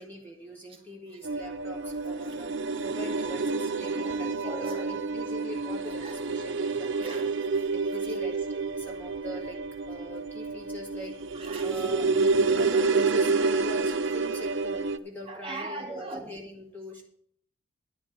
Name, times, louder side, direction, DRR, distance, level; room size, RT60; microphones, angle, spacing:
voice 1, 0.0-2.5 2.8-7.3 7.7-9.6 9.9-11.1 11.6-12.1 12.6-17.0, equal, 10° left, -2 dB, 1.9 m, -42 dB
sound 1, 1.2-15.0, right 4 dB, 60° right, 0.7 m, -29 dB
voice 2, 3.9-4.9 6.0-6.1 6.8-7.7 11.3-11.8 15.3-16.3, right 2 dB, 25° right, 2 dB, 2.3 m, -40 dB
11.0 x 5.9 x 8.8 m, 0.63 s
head